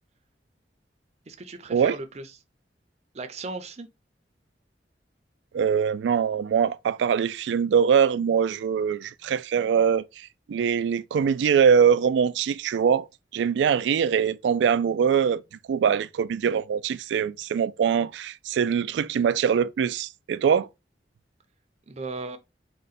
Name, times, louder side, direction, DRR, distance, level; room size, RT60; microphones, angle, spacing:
voice 1, 1.3-2.3 3.1-3.9 21.9-22.4, right 3 dB, 40° right, 0.5 m, -36 dB
voice 2, 5.5-13.1 13.3-15.4 15.7-20.7, right 7 dB, 85° right, 0.3 m, -23 dB
3.8 x 2.2 x 4.1 m
head